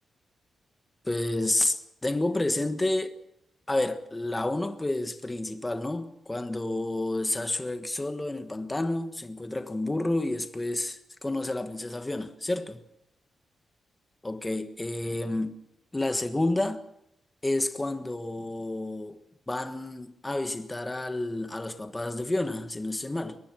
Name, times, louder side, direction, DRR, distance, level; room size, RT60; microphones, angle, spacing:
voice 1, 1.0-3.2 3.7-12.8 14.2-15.6 15.9-16.8 17.4-19.2 19.5-23.4, left 2 dB, 15° left, 1.4 m, -30 dB
23.0 x 19.0 x 6.2 m
wide cardioid pair, 155°, 0 cm